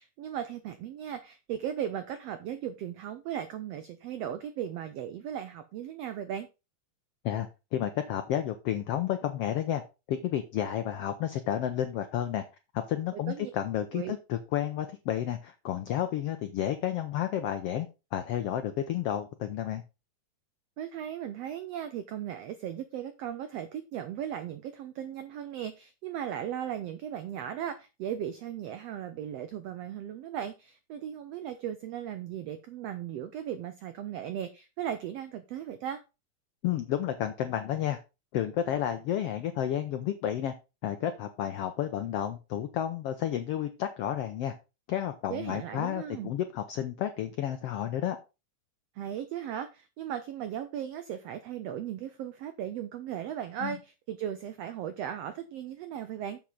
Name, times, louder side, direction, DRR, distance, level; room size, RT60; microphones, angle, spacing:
voice 1, 0.0-6.5 13.1-13.5 13.9-14.1 20.8-36.0 45.3-46.3 49.0-56.4, right 10 dB, 90° right, 10 dB, 1.4 m, -37 dB
voice 2, 7.2-9.8 10.1-12.4 12.7-19.8 36.6-38.0 38.3-40.5 40.8-44.5 44.9-48.2 53.6-53.8, left 11 dB, 85° left, 8 dB, 1.3 m, -31 dB
7.5 x 7.3 x 3.8 m, 0.28 s
omnidirectional pair, 3.6 m